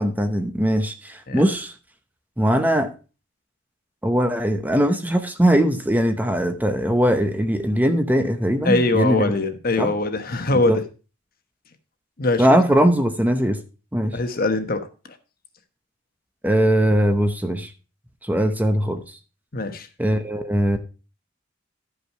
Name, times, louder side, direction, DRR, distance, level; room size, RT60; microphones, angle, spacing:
voice 1, 0.0-1.7 2.4-2.9 4.0-9.3 9.8-9.9 10.5-10.8 12.4-13.6 13.9-14.2 16.4-17.7 18.2-19.2 20.0-20.8, equal, 10° right, 7 dB, 0.7 m, -20 dB
voice 2, 8.6-10.8 12.2-12.4 14.1-14.9 19.5-19.9, left 2 dB, 50° left, 8 dB, 1.1 m, -22 dB
12.0 x 5.7 x 4.4 m, 0.33 s
head